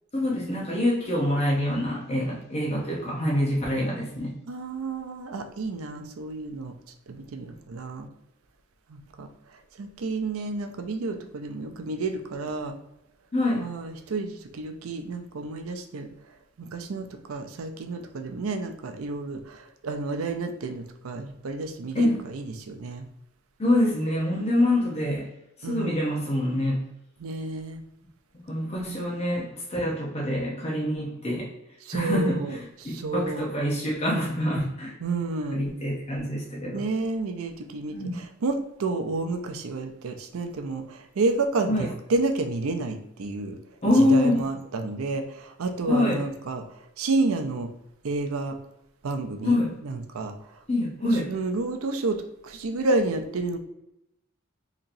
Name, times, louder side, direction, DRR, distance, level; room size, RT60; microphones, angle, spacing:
voice 1, 0.1-4.3 13.3-13.7 21.9-22.2 23.6-25.3 25.6-26.8 28.5-31.5 31.9-34.9 35.5-36.8 37.9-38.2 41.7-41.9 43.8-44.4 45.9-46.2 49.4-49.7 50.7-51.3, left 1 dB, 30° left, -4 dB, 0.8 m, -25 dB
voice 2, 4.5-6.7 7.1-8.1 8.9-9.3 9.8-12.8 13.6-16.1 16.6-22.1 22.3-23.0 25.6-26.0 27.2-27.8 28.7-29.0 31.8-33.5 35.0-35.6 36.7-43.6 44.0-46.6 47.0-47.7 48.0-48.6 49.0-50.3 51.0-53.6, right 3 dB, 85° right, 6 dB, 0.5 m, -30 dB
4.1 x 2.9 x 2.6 m, 0.86 s
head